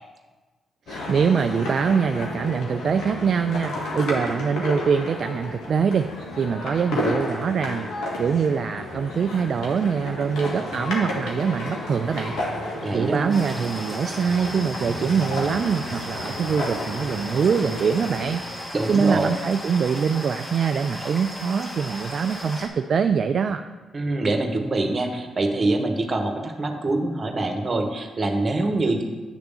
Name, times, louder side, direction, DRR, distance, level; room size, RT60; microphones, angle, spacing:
sound 1, 0.9-18.3, left 1 dB, 75° left, 1.6 m, -32 dB
voice 1, 0.9-6.1 6.4-7.9 8.2-12.3 12.9-18.4 18.9-23.6, right 6 dB, 60° right, 8 dB, 0.3 m, -24 dB
voice 2, 12.8-13.4 18.7-19.3 23.9-29.0, right 2 dB, 45° right, 4 dB, 1.2 m, -24 dB
sound 2, 13.3-22.7, equal, 25° left, 2.0 m, -36 dB
9.0 x 3.4 x 6.8 m, 1.3 s
supercardioid pair, 50°, 0 cm